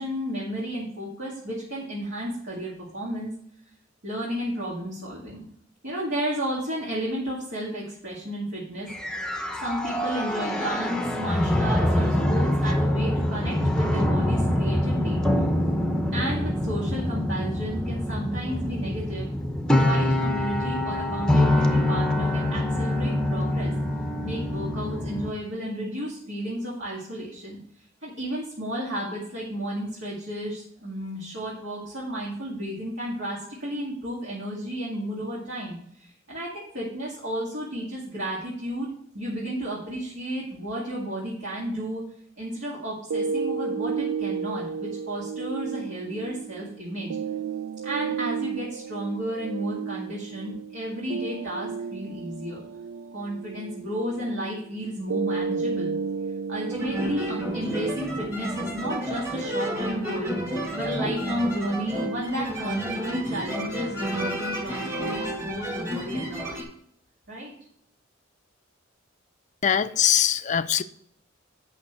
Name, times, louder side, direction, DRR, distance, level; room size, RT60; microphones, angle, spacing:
voice 1, 0.0-3.3 4.0-5.4 5.8-8.9 9.6-15.2 16.1-19.3 19.7-23.7 24.2-27.6 28.0-38.9 39.1-42.0 42.4-47.2 47.8-52.6 53.1-55.9 56.5-60.3 60.7-66.7 67.3-67.5, equal, 65° right, 2.2 m, -32 dB
sound 1, 8.9-25.3, left 1 dB, 5° left, 0.8 m, -25 dB
sound 2, 43.1-59.1, right 6 dB, 85° right, 0.3 m, -33 dB
sound 3, 56.7-66.6, right 1 dB, 15° right, 1.9 m, -31 dB
voice 2, 69.6-70.8, left 9 dB, 40° left, 0.4 m, -22 dB
8.9 x 5.8 x 4.5 m
head